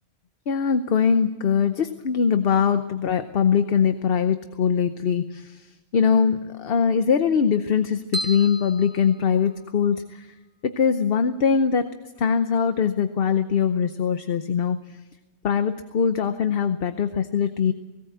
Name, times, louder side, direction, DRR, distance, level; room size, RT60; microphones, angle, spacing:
voice 1, 0.5-5.6 5.9-10.3 10.6-11.9 12.2-14.8 15.4-17.7, left 6 dB, 60° left, 9 dB, 1.0 m, -22 dB
sound 1, 8.1-9.9, right 1 dB, 50° right, 1.9 m, -35 dB
18.0 x 18.0 x 7.9 m, 1.1 s
omnidirectional pair, 1.1 m